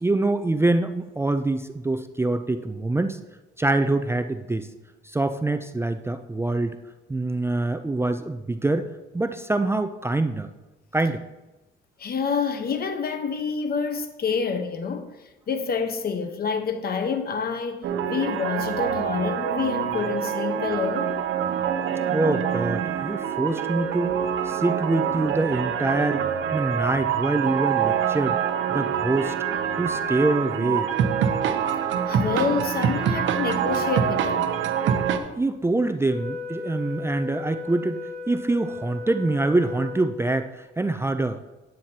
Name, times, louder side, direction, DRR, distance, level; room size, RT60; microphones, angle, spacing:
voice 1, 0.0-3.2 3.6-4.7 5.1-6.8 7.1-8.9 9.1-10.5 10.9-11.2 22.1-24.1 24.4-26.2 26.5-28.4 28.7-29.3 29.8-30.9 35.3-38.0 38.3-41.4, right 2 dB, 10° right, 0.4 m, -25 dB
voice 2, 12.0-15.2 15.5-21.2 32.1-34.6, left 5 dB, 50° left, 1.0 m, -27 dB
sound 1, 17.8-35.2, right 8 dB, 75° right, 0.8 m, -25 dB
Wind instrument woodwind instrument, 36.1-40.5, left 4 dB, 35° left, 2.3 m, -36 dB
9.4 x 9.0 x 2.8 m
cardioid pair, 90°, 20 cm